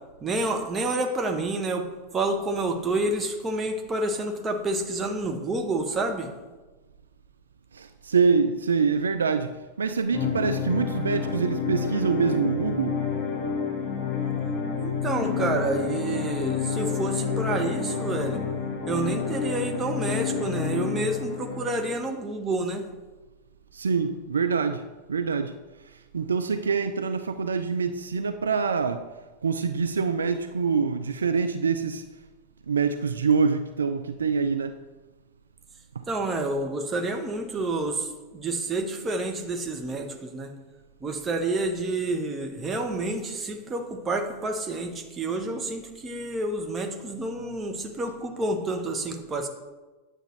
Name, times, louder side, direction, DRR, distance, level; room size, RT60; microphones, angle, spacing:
voice 1, 0.2-1.9 2.1-6.3 14.8-18.4 18.9-22.9 36.1-38.1 38.3-40.5 41.0-49.5, right 2 dB, 20° right, 4 dB, 1.0 m, -29 dB
voice 2, 7.7-9.5 9.8-13.0 23.7-24.8 25.1-25.5 26.1-29.0 29.4-32.0 32.7-34.8 36.0-36.1, right 5 dB, 70° right, 9 dB, 0.3 m, -25 dB
sound 1, 10.1-22.1, left 6 dB, 15° left, 2.2 m, -29 dB
9.2 x 6.3 x 3.2 m, 1.2 s
figure-of-eight pair, 90°, 0 cm